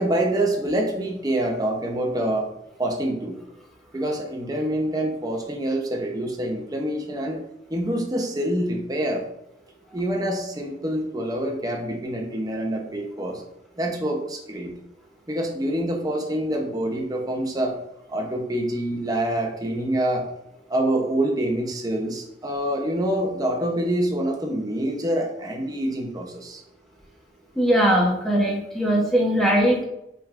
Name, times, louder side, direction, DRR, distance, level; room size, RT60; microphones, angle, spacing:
voice 1, 0.0-2.5 2.8-3.4 3.9-7.4 7.7-9.2 9.9-13.4 13.8-14.7 15.3-17.8 18.1-20.3 20.7-26.6, right 1 dB, 20° right, 1 dB, 0.7 m, -26 dB
voice 2, 27.6-29.8, equal, ahead, -3 dB, 0.9 m, -20 dB
5.9 x 3.4 x 2.5 m, 0.83 s
head